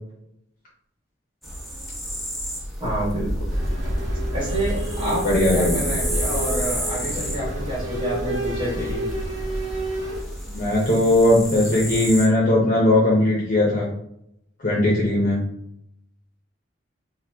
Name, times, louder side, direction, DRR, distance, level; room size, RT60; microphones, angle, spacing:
sound 1, 1.4-12.3, equal, ahead, 0.7 m, -29 dB
voice 1, 2.8-3.3 4.3-9.1, right 1 dB, 25° right, -7 dB, 1.4 m, -28 dB
sound 2, 3.5-10.2, right 1 dB, 85° right, 0.8 m, -31 dB
voice 2, 5.0-5.9 10.5-13.9 14.6-15.4, left 1 dB, 45° left, -4 dB, 0.7 m, -19 dB
2.9 x 2.2 x 3.4 m, 0.75 s
head